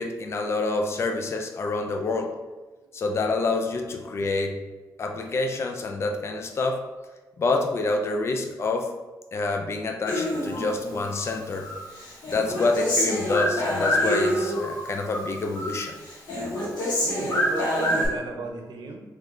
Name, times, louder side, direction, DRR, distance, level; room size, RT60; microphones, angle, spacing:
voice 1, 0.0-2.3 2.9-4.6 5.0-6.8 7.4-8.9 9.3-11.7 12.3-15.9, left 3 dB, 40° left, 4 dB, 0.4 m, -27 dB
Human voice, 10.1-11.2 11.6-14.8 15.1-15.8 16.1-18.1, left 1 dB, 75° left, 1.5 m, -26 dB
voice 2, 17.0-19.0, right 2 dB, 80° right, 2 dB, 0.7 m, -34 dB
3.8 x 3.2 x 3.2 m, 1.2 s
wide cardioid pair, 160°, 7 cm